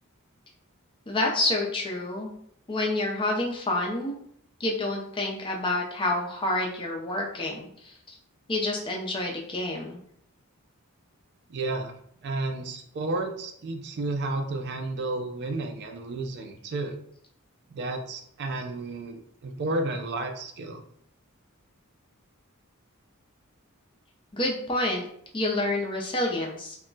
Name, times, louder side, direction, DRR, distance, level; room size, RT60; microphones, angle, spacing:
voice 1, 1.1-2.3 2.7-4.1 4.6-8.2 8.5-10.0 24.3-25.0 25.3-26.8, left 2 dB, 25° left, -1 dB, 0.5 m, -28 dB
voice 2, 11.5-12.0 12.2-17.0 17.7-20.8, right 2 dB, 50° right, 5 dB, 0.4 m, -32 dB
2.3 x 2.1 x 3.8 m, 0.66 s
head